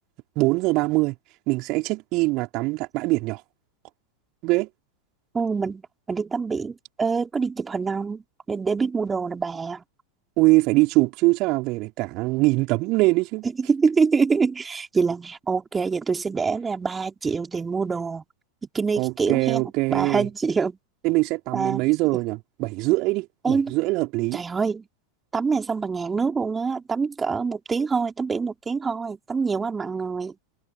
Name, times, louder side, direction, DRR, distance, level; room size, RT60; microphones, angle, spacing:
voice 1, 0.4-1.1 1.5-3.4 4.4-4.7 10.4-13.5 19.0-20.3 21.0-24.4, right 23 dB, 40° right, 4.5 m, -22 dB
voice 2, 5.3-8.2 8.5-9.8 13.4-18.2 18.7-19.6 19.9-20.8 21.5-21.9 23.4-23.7 24.3-24.9 25.3-30.3, right 5 dB, 15° right, 4.7 m, -25 dB
figure-of-eight pair, 90°, 0 cm